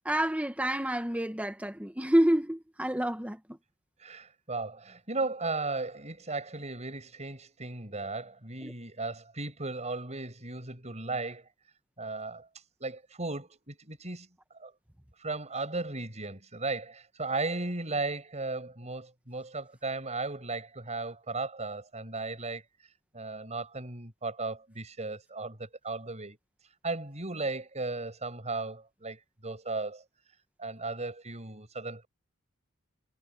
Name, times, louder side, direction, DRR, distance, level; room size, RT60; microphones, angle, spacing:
voice 1, 0.0-3.6 8.6-8.7, right 1 dB, 5° right, 1.5 m, -28 dB
voice 2, 4.0-11.5 12.0-14.3 14.6-14.7 15.2-22.6 23.1-26.4 26.8-32.1, right 3 dB, 30° right, 6.9 m, -36 dB
head